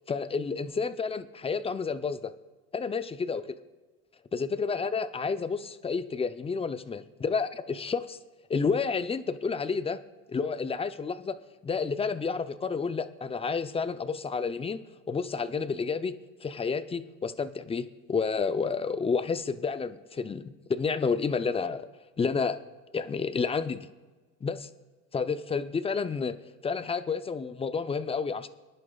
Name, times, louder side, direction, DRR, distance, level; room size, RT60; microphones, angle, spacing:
voice 1, 0.1-2.3 2.7-3.4 4.3-8.2 8.5-10.0 10.3-11.4 11.6-14.8 15.1-21.9 22.2-22.6 22.9-23.9 24.4-24.7 25.1-26.3 26.6-28.5, left 5 dB, 15° left, 12 dB, 0.5 m, -30 dB
24.5 x 11.0 x 2.4 m, 1.3 s
supercardioid pair, 90°, 48 cm